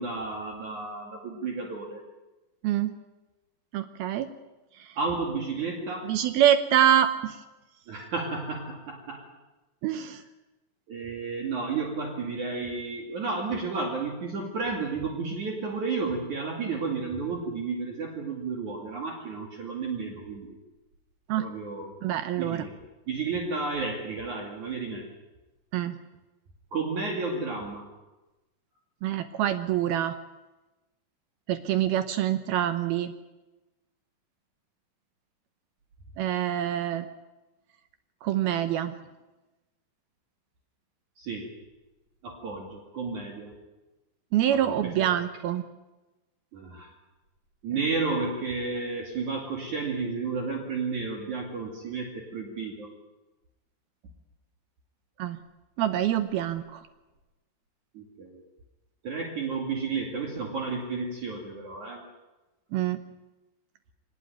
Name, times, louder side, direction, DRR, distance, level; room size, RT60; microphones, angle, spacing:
voice 1, 0.0-2.0 5.0-6.2 7.9-9.2 10.9-20.6 21.4-21.9 22.4-22.8 23.1-25.1 26.7-27.9 41.2-41.5 42.2-43.6 44.5-45.1 46.5-46.9 47.6-52.9 57.9-58.4 59.0-62.0, right 4 dB, 50° right, 1 dB, 3.6 m, -32 dB
voice 2, 2.6-2.9 3.7-4.3 6.1-7.4 9.8-10.2 21.3-21.5 22.0-22.6 25.7-26.0 29.0-30.1 31.5-33.1 36.2-37.1 38.2-38.9 44.3-45.6 55.2-55.4 55.8-56.8 62.7-63.0, right 11 dB, 75° right, 10 dB, 2.7 m, -25 dB
23.0 x 19.5 x 9.3 m, 1.1 s
omnidirectional pair, 4.7 m